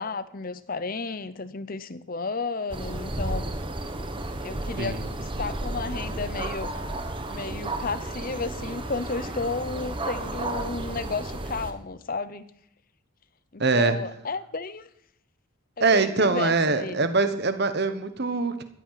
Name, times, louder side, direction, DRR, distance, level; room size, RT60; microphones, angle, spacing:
voice 1, 0.0-3.5 4.4-6.7 7.2-12.4 13.5-14.9 15.8-17.1, left 3 dB, 40° left, 15 dB, 0.7 m, -32 dB
sound 1, 2.7-11.7, right 2 dB, 25° right, 1.2 m, -33 dB
voice 2, 4.8-5.1 13.6-14.0 15.8-18.6, right 3 dB, 50° right, 10 dB, 1.2 m, -23 dB
14.0 x 11.5 x 5.8 m, 0.75 s
head